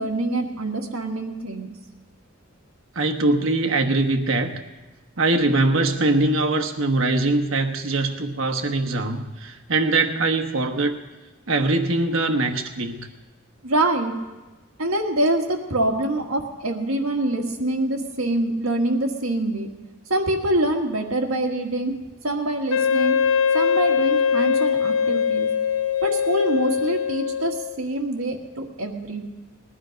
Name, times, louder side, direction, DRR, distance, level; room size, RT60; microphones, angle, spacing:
voice 1, 0.0-1.7 13.6-14.1 14.8-19.7 20.1-21.9 22.2-23.2 23.5-25.5 26.0-29.3, right 1 dB, 85° right, 2 dB, 1.7 m, -25 dB
voice 2, 2.9-4.6 5.2-11.0 11.5-13.1, right 2 dB, 70° right, 4 dB, 1.2 m, -22 dB
Wind instrument woodwind instrument, 22.7-27.8, left 6 dB, 90° left, 0.8 m, -22 dB
20.0 x 11.5 x 5.2 m, 1.2 s
head